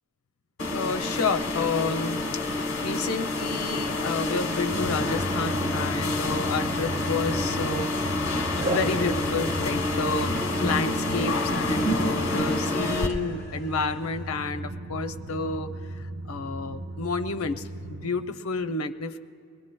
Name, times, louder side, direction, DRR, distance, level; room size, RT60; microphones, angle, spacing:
sound 1, 0.6-13.1, left 2 dB, 55° left, 1.1 m, -28 dB
voice 1, 0.7-7.9 8.7-10.3 10.6-15.7 16.3-17.6 17.9-19.2, left 4 dB, 75° left, 8 dB, 0.6 m, -30 dB
Drum, 4.7-18.1, right 1 dB, 65° right, 2.2 m, -37 dB
sound 2, 8.6-14.5, right 2 dB, 30° right, 1.2 m, -40 dB
21.5 x 20.5 x 2.2 m, 2.3 s
head